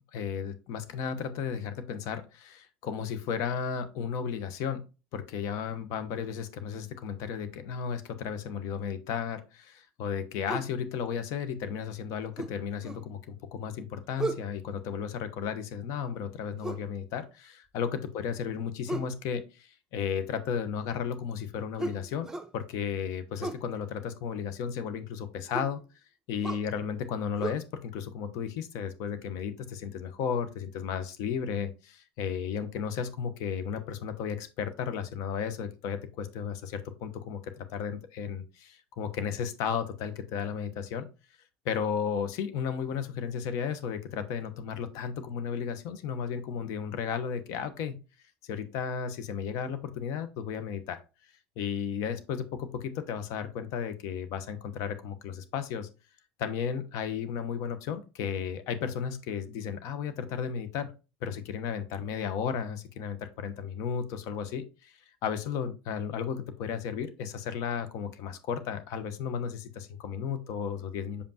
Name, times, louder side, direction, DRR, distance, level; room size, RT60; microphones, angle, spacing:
voice 1, 0.1-4.8 5.1-25.8 26.3-41.1 41.6-48.0 48.4-51.0 51.6-55.9 56.4-60.9 61.2-64.9 65.2-71.2, left 7 dB, 65° left, 10 dB, 1.0 m, -34 dB
sound 1, 10.5-10.7 12.4-13.1 14.2-14.5 16.6-16.9 18.9-19.2 21.8-22.5 23.4-23.7 25.5-25.8 26.4-26.7 27.4-27.5, right 3 dB, 10° right, 0.9 m, -35 dB
6.8 x 5.3 x 2.8 m, 0.31 s
supercardioid pair, 90°, 6 cm